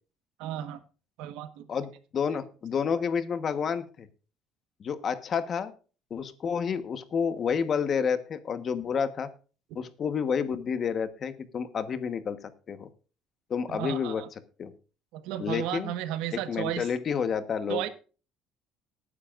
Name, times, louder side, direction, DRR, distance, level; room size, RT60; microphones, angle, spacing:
voice 1, 0.4-0.8 1.2-1.7 13.7-14.3 15.1-16.9 17.7-17.9, right 12 dB, 90° right, 10 dB, 1.3 m, -34 dB
voice 2, 1.7-4.1 4.8-5.7 6.1-9.3 9.7-12.4 12.7-12.9 13.5-14.2 14.6-14.7 15.4-15.9 16.5-17.9, left 6 dB, 35° left, 11 dB, 1.2 m, -29 dB
19.5 x 9.7 x 2.5 m, 0.36 s
cardioid pair, 145°, 0 cm